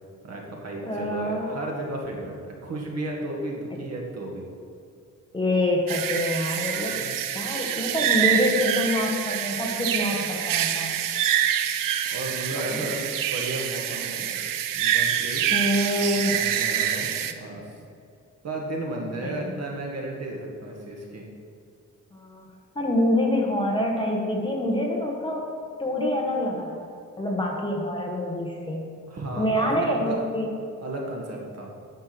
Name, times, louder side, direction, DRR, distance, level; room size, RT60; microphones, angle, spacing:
voice 1, 0.2-4.5 6.8-7.2 10.0-10.1 12.1-14.4 14.7-15.5 16.1-17.7 18.4-21.2 29.1-30.2 30.8-31.7, right 1 dB, 50° right, -1 dB, 1.8 m, -34 dB
voice 2, 0.8-1.6 5.3-7.0 7.3-11.0 12.6-12.8 15.5-16.5 19.2-19.3 22.1-22.4 22.7-25.5 25.8-26.8 27.2-28.9 29.4-30.5, left 1 dB, 15° left, 0 dB, 1.1 m, -26 dB
sound 1, 5.9-17.3, right 10 dB, 75° right, 0.7 m, -26 dB
9.6 x 6.4 x 6.0 m, 2.5 s
wide cardioid pair, 160°, 33 cm